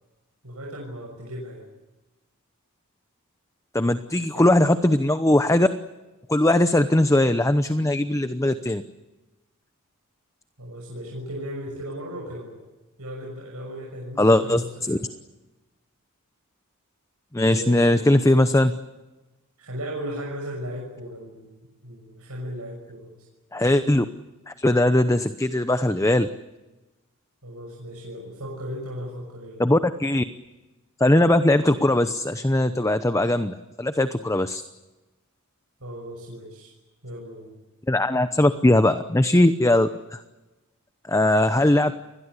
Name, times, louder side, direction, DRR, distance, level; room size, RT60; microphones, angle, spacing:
voice 1, 0.4-1.7 4.3-4.5 10.6-12.6 13.0-15.0 17.5-18.0 19.6-23.2 27.4-29.6 35.8-36.7 37.0-37.6, equal, 85° right, -1 dB, 6.4 m, -36 dB
voice 2, 3.7-5.7 6.3-8.8 14.2-14.6 14.9-15.0 17.3-18.7 23.5-24.0 24.5-26.3 29.6-30.2 31.0-34.6 37.9-40.2 41.1-41.9, left 1 dB, 15° left, 10 dB, 0.8 m, -20 dB
29.5 x 21.5 x 8.3 m, 1.1 s
head